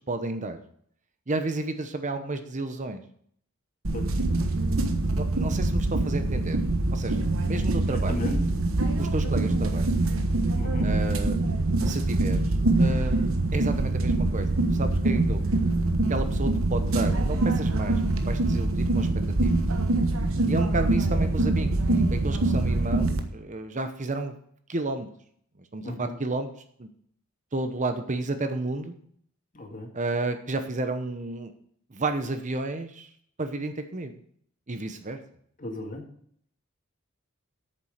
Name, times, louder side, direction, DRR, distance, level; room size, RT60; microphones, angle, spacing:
voice 1, 0.1-0.6 1.3-3.0 5.1-6.6 6.9-8.2 9.0-9.9 10.8-11.4 11.9-15.4 16.1-19.1 19.4-19.5 20.5-24.3 24.7-25.1 25.7-26.5 26.8-26.9 27.5-29.0 29.9-31.5 31.9-33.1 33.4-34.1 34.7-35.2, right 2 dB, 35° right, 8 dB, 0.9 m, -31 dB
sound 1, 3.8-23.2, right 2 dB, 65° right, 1.2 m, -24 dB
voice 2, 8.1-8.4 10.6-10.9 25.8-26.2 29.5-29.9 35.6-36.0, left 1 dB, 40° left, 2 dB, 2.2 m, -35 dB
8.9 x 7.3 x 6.5 m, 0.64 s
head